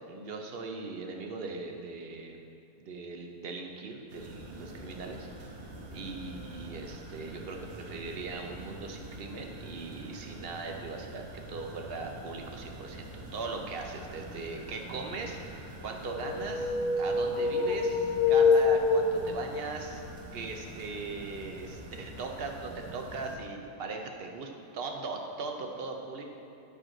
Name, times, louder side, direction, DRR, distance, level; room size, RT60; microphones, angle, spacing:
voice 1, 0.1-2.4 2.8-5.3 5.9-11.2 11.5-20.0 20.3-26.3, right 3 dB, 50° right, 3 dB, 0.8 m, -39 dB
sound 1, 4.1-23.4, right 1 dB, 75° right, 1.4 m, -45 dB
sound 2, 16.1-19.7, left 4 dB, 90° left, 1.1 m, -26 dB
8.9 x 6.1 x 3.9 m, 2.7 s
omnidirectional pair, 1.5 m